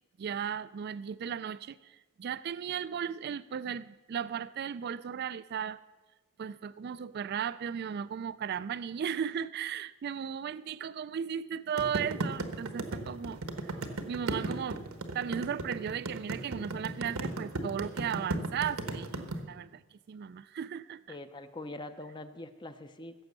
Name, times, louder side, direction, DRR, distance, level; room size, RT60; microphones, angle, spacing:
voice 1, 0.2-5.8 6.4-13.7 14.1-14.8 15.1-21.2, right 8 dB, 50° right, 16 dB, 0.3 m, -36 dB
sound 1, 11.8-19.4, right 2 dB, 90° right, 1.3 m, -35 dB
voice 2, 21.1-23.1, left 2 dB, 20° left, 9 dB, 0.6 m, -43 dB
15.5 x 7.1 x 6.7 m, 1.2 s
head